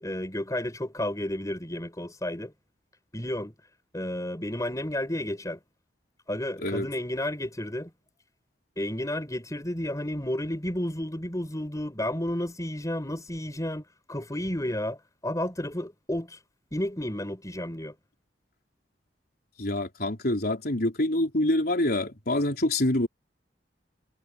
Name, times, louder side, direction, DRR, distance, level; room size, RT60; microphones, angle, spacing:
voice 1, 0.0-2.5 3.1-3.5 3.9-5.6 6.3-7.9 8.8-15.0 15.2-16.4 16.7-17.9, left 1 dB, 20° left, 5.0 m, -32 dB
voice 2, 19.6-23.1, left 1 dB, 55° left, 4.3 m, -26 dB
head